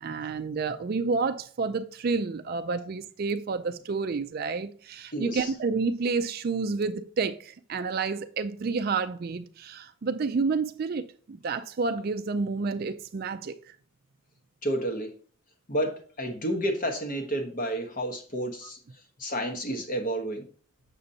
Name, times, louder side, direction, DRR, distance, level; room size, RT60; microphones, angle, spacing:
voice 1, 0.0-13.5, right 4 dB, 45° right, 0.4 m, -29 dB
voice 2, 5.1-5.6 14.6-15.1 15.7-18.8 19.2-20.5, right 1 dB, 40° left, 1.0 m, -30 dB
6.8 x 6.5 x 2.7 m
head